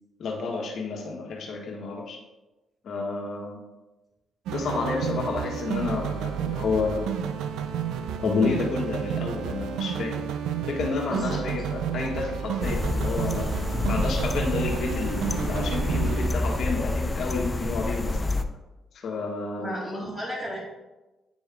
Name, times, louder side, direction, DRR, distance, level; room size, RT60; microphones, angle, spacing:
voice 1, 0.2-2.2 2.8-3.6 4.5-7.1 8.2-10.2 10.7-18.2 18.9-19.7, left 4 dB, 65° left, 0 dB, 1.4 m, -30 dB
sound 1, 4.5-16.3, right 8 dB, 85° right, 0.4 m, -31 dB
voice 2, 11.1-11.4 13.7-13.9 19.6-20.6, equal, 20° right, -8 dB, 2.1 m, -33 dB
sound 2, 12.6-18.4, left 2 dB, 25° left, 0.5 m, -28 dB
9.2 x 3.5 x 3.5 m, 1.1 s
cardioid pair, 80°, 0 cm